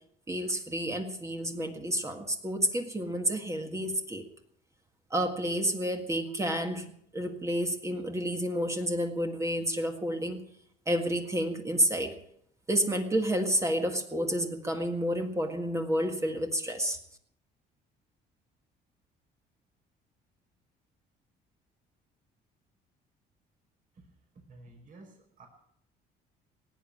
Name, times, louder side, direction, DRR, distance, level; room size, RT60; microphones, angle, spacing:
voice 1, 0.3-4.2 5.1-10.4 10.9-12.2 12.7-17.0, equal, 15° right, 4 dB, 1.8 m, -30 dB
voice 2, 24.3-25.5, right 2 dB, 50° right, 2 dB, 5.3 m, -52 dB
17.5 x 9.2 x 8.7 m, 0.71 s
cardioid pair, 110°, 17 cm